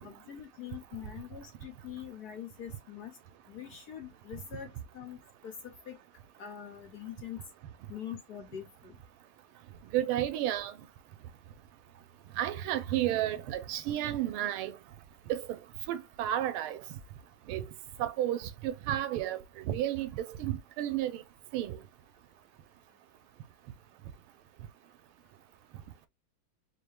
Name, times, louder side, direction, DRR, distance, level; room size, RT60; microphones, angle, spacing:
voice 1, 0.0-3.2 3.5-5.2 5.4-6.0 6.4-7.4 7.9-9.0, left 10 dB, 60° left, 1.2 m, -44 dB
voice 2, 9.9-10.7 12.4-14.7 15.3-15.6 15.9-16.8 17.5-17.6 18.0-21.2 21.5-21.8, right 12 dB, 90° right, 1.5 m, -32 dB
4.6 x 2.2 x 3.3 m
omnidirectional pair, 2.3 m